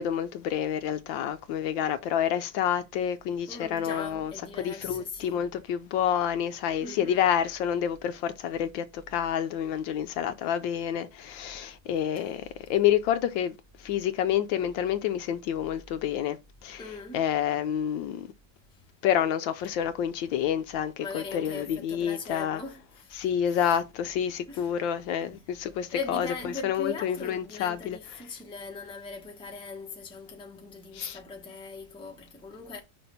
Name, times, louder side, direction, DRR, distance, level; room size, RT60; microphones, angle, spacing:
voice 1, 0.0-4.3 4.6-13.6 13.8-16.4 16.6-16.8 17.1-18.3 19.0-22.6 23.1-26.3 26.6-28.0 30.9-31.2, left 9 dB, 75° left, 1.2 m, -28 dB
voice 2, 3.5-5.5 6.8-7.2 12.2-12.3 16.8-17.2 21.0-23.8 24.5-24.7 25.2-25.5 25.9-32.8, left 4 dB, 5° left, 0.7 m, -40 dB
6.1 x 3.3 x 5.5 m
omnidirectional pair, 2.3 m